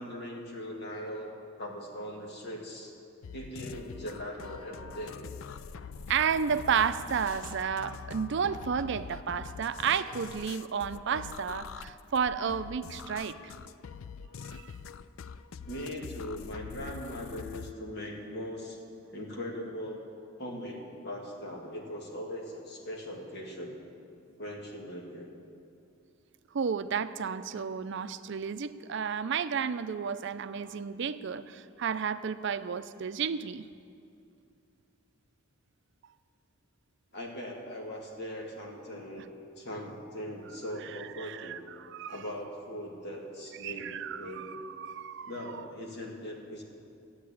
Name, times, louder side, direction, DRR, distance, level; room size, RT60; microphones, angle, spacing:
voice 1, 0.0-1.3 1.6-2.9 3.3-5.2 12.3-12.5 15.6-18.8 19.1-20.0 20.4-23.8 24.4-25.3 37.1-39.3 39.6-41.6 42.1-43.9 44.1-44.5 45.2-46.6, equal, 55° left, -1 dB, 2.3 m, -40 dB
sound 1, 3.2-17.7, left 6 dB, 85° left, 0.4 m, -44 dB
voice 2, 6.1-13.5 14.4-14.7 26.5-33.7 41.1-42.2 43.6-45.3, right 7 dB, 60° right, 12 dB, 0.5 m, -32 dB
13.0 x 8.6 x 8.6 m, 2.6 s
head